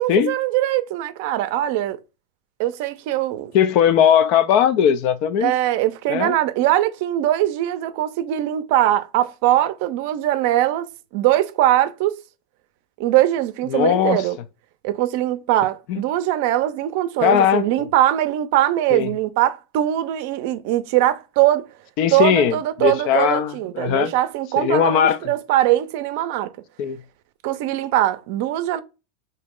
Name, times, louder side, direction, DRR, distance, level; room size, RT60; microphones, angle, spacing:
voice 1, 0.0-2.0 2.6-3.5 5.4-12.2 13.0-14.4 14.8-21.7 22.1-26.5 27.4-28.8, right 13 dB, 60° right, 0.5 m, -21 dB
voice 2, 3.5-5.5 6.1-6.4 13.7-14.2 15.9-16.0 17.2-17.7 18.9-19.1 22.0-24.1 24.6-25.2 26.8-27.0, left 9 dB, 50° left, 0.4 m, -18 dB
3.0 x 2.7 x 3.6 m
supercardioid pair, 145°, 0 cm